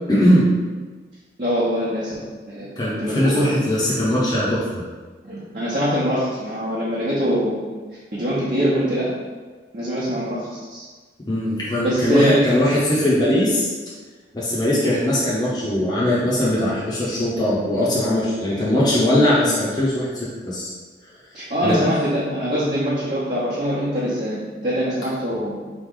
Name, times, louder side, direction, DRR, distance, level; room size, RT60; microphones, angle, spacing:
voice 1, 0.1-0.4 2.8-4.6 11.3-13.7 14.3-20.7 21.6-21.8, left 1 dB, 20° left, -8 dB, 0.7 m, -20 dB
voice 2, 1.4-2.2 2.5-3.7 5.2-7.6 8.1-9.1 9.7-10.9 11.8-12.5 21.3-25.6, equal, 45° right, -9 dB, 0.9 m, -23 dB
4.0 x 3.1 x 3.8 m, 1.4 s
head